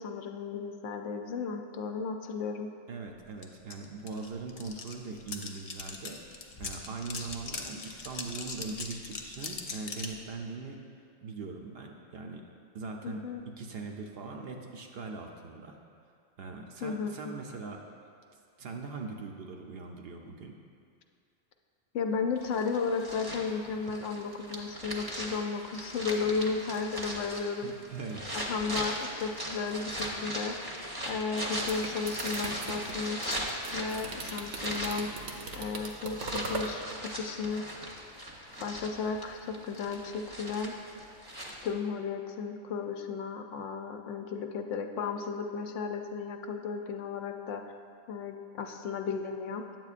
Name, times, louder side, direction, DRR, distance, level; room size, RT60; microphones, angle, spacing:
voice 1, 0.0-2.7 13.0-13.4 16.8-17.3 21.9-27.7 28.3-33.4 33.7-35.1 35.6-37.7 38.6-40.7 41.6-47.6 48.1-49.6, left 5 dB, 80° left, 5 dB, 0.9 m, -34 dB
voice 2, 2.9-10.8 11.2-12.4 12.7-13.2 13.6-15.8 16.4-17.8 18.6-20.6 27.6-28.4, right 4 dB, 60° right, 2 dB, 0.7 m, -41 dB
sound 1, 3.4-3.5 3.7-10.2, left 4 dB, 55° left, 0.4 m, -40 dB
sound 2, 22.3-41.7, equal, 25° right, 0.7 m, -39 dB
sound 3, 31.3-36.7, right 3 dB, 90° right, 1.1 m, -40 dB
9.2 x 7.6 x 2.4 m, 2.3 s
omnidirectional pair, 1.3 m